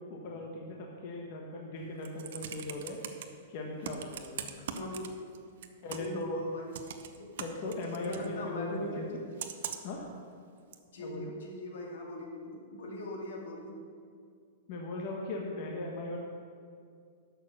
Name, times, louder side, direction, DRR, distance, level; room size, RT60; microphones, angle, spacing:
voice 1, 0.0-3.0 3.5-4.5 5.8-6.4 7.4-9.2 9.8-10.1 11.0-11.3 14.7-16.2, left 2 dB, 35° left, -1 dB, 1.1 m, -38 dB
Computer keyboard, 1.8-3.2 3.8-5.4 5.6-6.2 6.7-8.3 9.4-10.0 10.7-10.8, right 8 dB, 55° right, 0.8 m, -41 dB
voice 2, 4.8-5.3 6.0-6.7 7.2-7.3 8.0-9.3 10.9-13.8, left 1 dB, 75° left, -1 dB, 2.5 m, -40 dB
11.0 x 6.7 x 6.3 m, 2.2 s
supercardioid pair, 180°, 0 cm